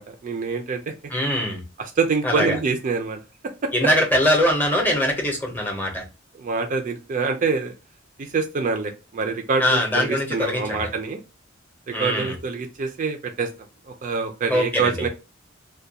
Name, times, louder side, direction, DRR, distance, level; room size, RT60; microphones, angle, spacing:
voice 1, 0.0-0.9 2.0-3.2 3.6-3.7 6.4-7.7 8.2-11.2 11.9-13.5 14.0-15.1, right 4 dB, 40° right, 4 dB, 0.3 m, -25 dB
voice 2, 1.1-1.6 2.2-2.6 3.7-6.0 9.6-10.9 11.9-12.4 14.5-15.1, equal, 10° left, 1 dB, 0.7 m, -22 dB
2.3 x 2.2 x 2.7 m, 0.29 s
head